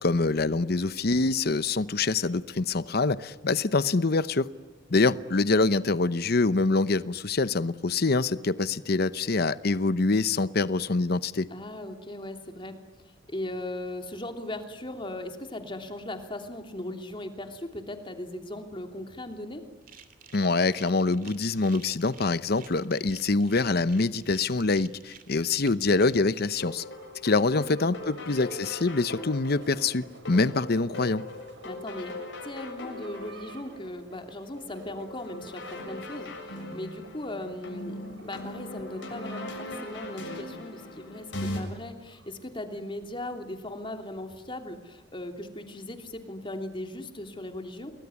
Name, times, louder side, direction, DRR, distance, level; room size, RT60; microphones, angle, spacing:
voice 1, 0.0-4.5 4.9-11.5 20.3-26.8 27.2-31.2, left 3 dB, 55° left, 15 dB, 0.8 m, -25 dB
voice 2, 11.5-12.8 13.0-19.6 27.5-28.3 31.6-47.9, left 1 dB, 25° left, 5 dB, 3.0 m, -38 dB
sound 1, 19.8-26.2, right 8 dB, 45° right, 2.8 m, -52 dB
sound 2, 26.6-41.6, left 1 dB, 75° left, 7.2 m, -40 dB
sound 3, 26.6-42.4, right 2 dB, 75° right, 5.0 m, -53 dB
29.0 x 20.5 x 9.8 m, 1.3 s
head